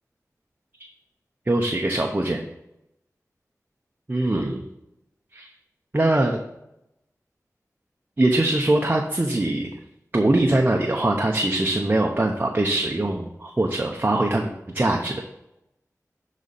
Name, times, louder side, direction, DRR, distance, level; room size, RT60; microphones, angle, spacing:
voice 1, 1.5-2.4 4.1-4.6 5.3-5.5 5.9-6.4 8.2-9.7 10.1-15.2, right 1 dB, 30° right, 1 dB, 0.9 m, -22 dB
11.5 x 4.2 x 4.2 m, 0.86 s
wide cardioid pair, 80°, 6 cm